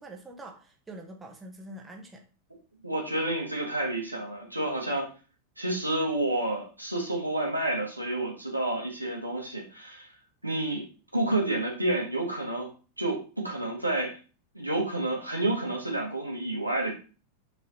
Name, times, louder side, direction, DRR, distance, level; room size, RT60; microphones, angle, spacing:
voice 1, 0.0-2.2, right 1 dB, 15° right, 2 dB, 1.3 m, -45 dB
voice 2, 2.8-5.1 5.6-10.1 10.4-10.8 11.1-12.7 13.0-14.2 14.5-16.9, right 1 dB, 85° right, -1 dB, 2.0 m, -29 dB
5.5 x 4.8 x 4.4 m, 0.35 s
figure-of-eight pair, 90°, 0 cm